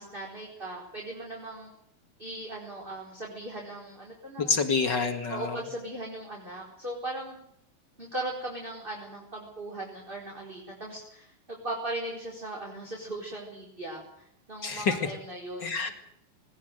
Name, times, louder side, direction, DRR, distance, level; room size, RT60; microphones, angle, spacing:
voice 1, 0.0-1.7 2.2-4.6 5.3-7.4 8.0-15.9, right 2 dB, 10° right, -2 dB, 4.4 m, -38 dB
voice 2, 4.4-5.6 14.6-15.0 15.6-15.9, left 4 dB, 45° left, 7 dB, 1.4 m, -27 dB
20.0 x 19.5 x 7.9 m, 0.74 s
omnidirectional pair, 4.8 m